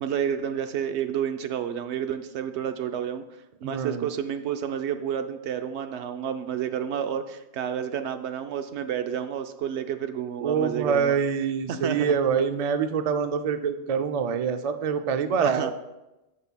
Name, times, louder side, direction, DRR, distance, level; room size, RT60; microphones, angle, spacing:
voice 1, 0.0-3.2 3.6-11.1 11.7-12.2 15.4-15.7, right 8 dB, 85° right, 8 dB, 0.9 m, -30 dB
voice 2, 3.6-4.1 10.4-15.7, right 6 dB, 50° right, 8 dB, 0.4 m, -25 dB
15.0 x 5.5 x 2.2 m, 0.98 s
omnidirectional pair, 1.1 m